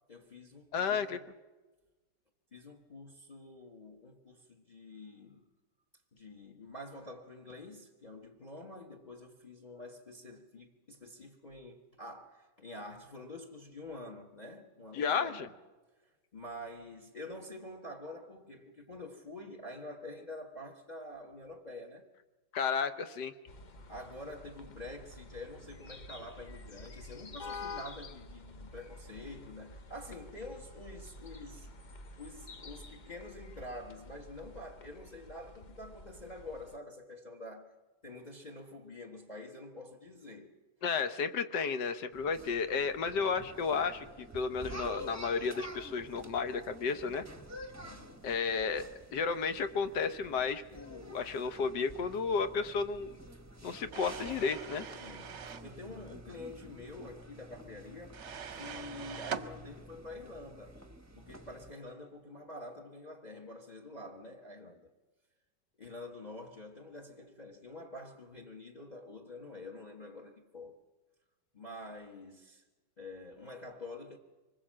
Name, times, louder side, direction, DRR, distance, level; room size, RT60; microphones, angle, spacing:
voice 1, 0.1-1.0 2.5-5.4 6.1-15.5 16.0-22.1 23.9-31.7 32.2-37.7 38.0-40.5 47.8-48.2 55.0-60.8 61.1-64.9 65.8-70.8 71.5-72.6 73.0-74.2, left 1 dB, 25° left, 1.4 m, -47 dB
voice 2, 0.7-1.2 14.9-15.5 22.5-23.3 40.8-47.2 48.2-48.8 49.1-53.2 53.6-54.9, left 5 dB, 75° left, 1.6 m, -32 dB
sound 1, 23.5-36.8, left 3 dB, 50° left, 0.5 m, -49 dB
sound 2, 42.1-61.7, equal, 10° right, 1.0 m, -49 dB
sound 3, 53.9-55.7 58.1-59.5, right 7 dB, 50° right, 1.0 m, -42 dB
24.5 x 20.5 x 7.5 m
omnidirectional pair, 1.9 m